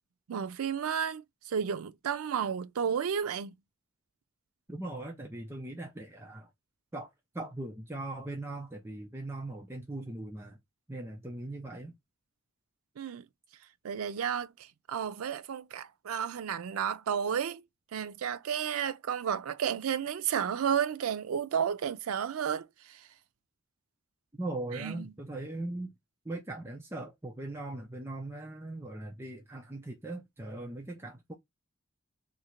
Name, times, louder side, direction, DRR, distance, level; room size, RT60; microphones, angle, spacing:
voice 1, 0.3-3.5 13.0-13.2 13.8-17.6 17.9-23.1 24.7-25.1, right 8 dB, 90° right, 0.4 m, -32 dB
voice 2, 4.7-6.5 6.9-7.1 7.3-10.6 10.9-11.9 24.4-25.9 26.3-31.3, right 2 dB, 10° right, 0.6 m, -39 dB
2.8 x 2.6 x 4.3 m
head